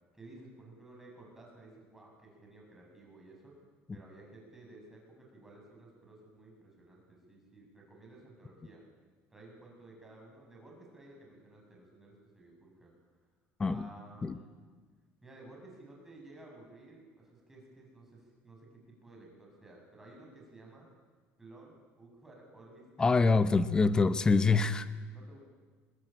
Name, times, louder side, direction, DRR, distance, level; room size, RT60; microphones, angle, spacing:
voice 1, 0.1-3.6 3.9-8.8 9.3-12.9 13.6-14.5 15.2-20.9 21.4-23.4 24.8-25.4, right 2 dB, 5° right, -1 dB, 7.1 m, -54 dB
voice 2, 23.0-24.9, left 4 dB, 15° left, 12 dB, 0.9 m, -25 dB
26.0 x 20.5 x 9.0 m, 1.4 s
cardioid pair, 160°, 5 cm